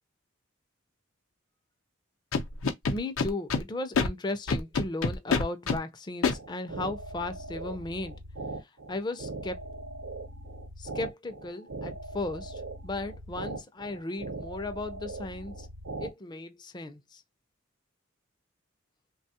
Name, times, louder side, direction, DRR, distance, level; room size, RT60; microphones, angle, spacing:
Scratching (performance technique), 2.3-3.6 3.9-4.1 4.5-5.8 6.2-6.3, left 4 dB, 85° left, 0.6 m, -26 dB
voice 1, 2.9-8.2 8.6-9.6 10.8-15.7 16.0-17.2, left 2 dB, 20° left, 0.4 m, -36 dB
sound 1, 6.3-16.1, right 2 dB, 75° right, 0.7 m, -40 dB
3.1 x 2.3 x 2.7 m
head